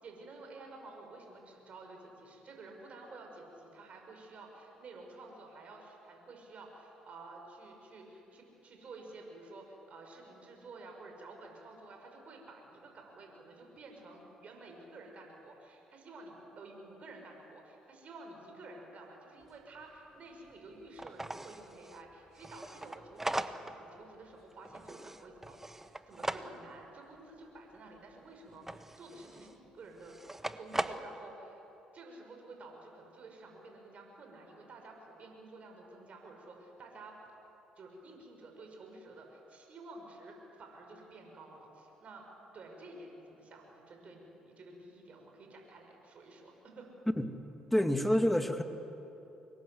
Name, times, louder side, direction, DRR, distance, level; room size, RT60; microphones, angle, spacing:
voice 1, 0.0-30.1 30.6-31.6 31.9-37.1 37.8-42.3 42.5-46.9, right 2 dB, 50° right, 2 dB, 6.2 m, -51 dB
sound 1, 19.4-19.5 19.8-19.9 20.5-20.6 21.0-23.9 24.2-26.8 28.5-29.6 30.0-31.1, right 1 dB, 10° right, 1.2 m, -40 dB
voice 2, 47.7-48.6, left 1 dB, 5° left, 6 dB, 2.3 m, -27 dB
25.0 x 22.0 x 8.1 m, 3.0 s
hypercardioid pair, 55°, 3 cm